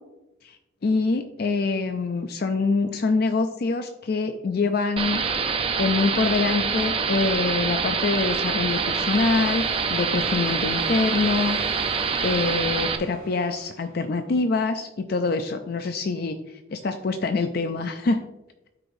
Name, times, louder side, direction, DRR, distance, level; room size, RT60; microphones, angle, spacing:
voice 1, 0.4-5.2 5.8-11.6 12.2-16.4 16.7-18.2, left 3 dB, 50° left, 7 dB, 0.4 m, -25 dB
sound 1, 5.0-13.0, right 5 dB, 25° right, 0.5 m, -25 dB
sound 2, 8.7-14.2, right 1 dB, 45° right, 2.5 m, -41 dB
12.5 x 4.9 x 2.6 m, 1.0 s
head